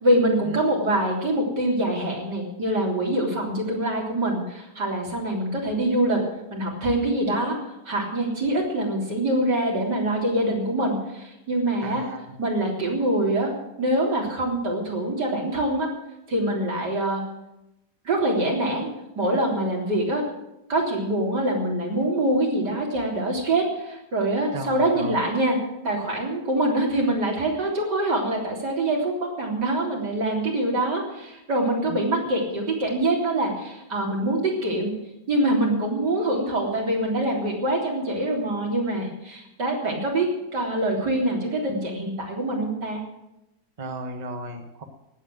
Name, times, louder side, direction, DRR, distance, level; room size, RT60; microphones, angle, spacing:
voice 1, 0.0-6.2 6.5-7.6 7.9-12.0 12.4-13.5 13.8-15.9 16.3-17.2 18.1-18.9 19.2-20.2 20.7-25.6 25.8-34.9 35.3-40.3 40.5-43.0, right 1 dB, 90° right, -1 dB, 4.1 m, -24 dB
voice 2, 11.8-12.3 24.5-25.1 31.9-32.0 43.8-44.8, right 2 dB, 25° right, 5 dB, 1.5 m, -35 dB
18.5 x 8.3 x 7.7 m, 0.87 s
omnidirectional pair, 1.8 m